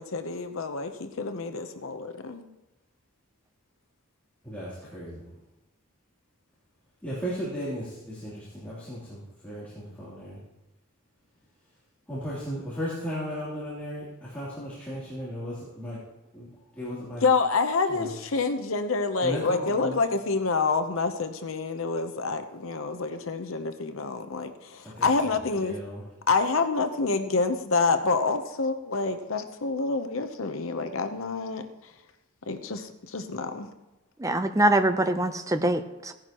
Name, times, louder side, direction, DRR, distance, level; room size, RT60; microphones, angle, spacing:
voice 1, 0.0-2.4 17.2-25.8 26.3-31.9 32.5-33.7, left 4 dB, 65° left, 8 dB, 0.8 m, -27 dB
voice 2, 4.4-5.2 7.0-10.4 12.1-14.0 14.3-16.0 16.3-16.5 16.8-17.2 17.9-18.1 19.2-19.9 25.0-25.1 25.6-26.0, equal, 10° left, -9 dB, 3.1 m, -35 dB
voice 3, 34.2-36.1, right 1 dB, 15° right, 8 dB, 0.6 m, -24 dB
16.5 x 11.0 x 3.0 m, 1.0 s
head